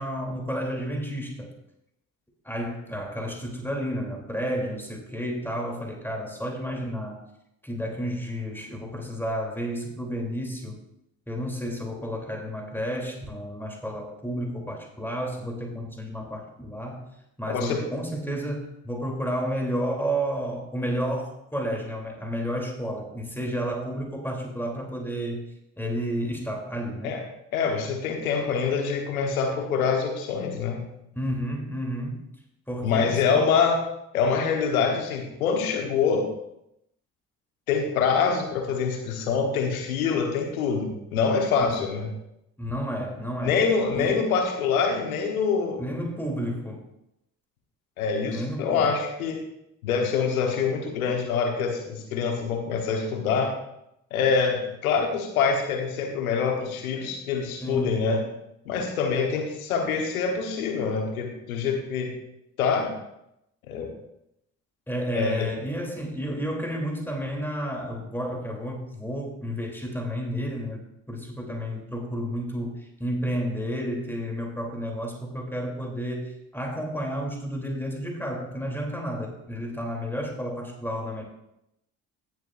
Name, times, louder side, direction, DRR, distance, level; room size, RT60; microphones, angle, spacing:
voice 1, 0.0-1.5 2.4-7.3 7.6-10.8 11.3-17.0 17.4-25.5 25.8-27.2 31.1-32.2 32.7-33.4 41.7-41.8 42.6-43.6 43.9-44.2 45.8-46.9 48.2-48.9 57.6-58.0 64.9-81.2, equal, 5° left, 0 dB, 3.2 m, -31 dB
voice 2, 17.5-17.8 27.0-27.2 27.5-30.9 32.8-33.8 34.1-36.3 37.7-42.1 43.4-45.8 48.0-49.4 49.8-53.5 54.1-58.2 58.6-62.2 62.6-62.9 63.7-63.9 65.1-65.5, left 5 dB, 90° left, 3 dB, 1.4 m, -25 dB
17.5 x 7.4 x 2.6 m, 0.82 s
hypercardioid pair, 40°, 41 cm